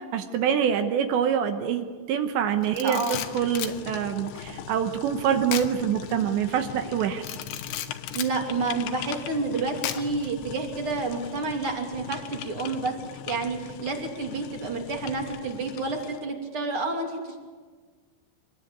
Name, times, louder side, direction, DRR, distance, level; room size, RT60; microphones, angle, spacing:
voice 1, 0.1-7.2, right 8 dB, 75° right, 6 dB, 3.3 m, -25 dB
Camera, 2.6-3.8 5.5-5.7 6.1-6.2 7.2-8.3 9.8-10.3, left 11 dB, 90° left, 3.5 m, -34 dB
voice 2, 2.8-3.2 8.1-12.9 13.3-17.4, right 3 dB, 35° right, 2 dB, 3.0 m, -29 dB
sound 1, 3.1-16.2, left 9 dB, 75° left, 2.9 m, -40 dB
25.0 x 20.5 x 8.8 m, 1.5 s
omnidirectional pair, 5.3 m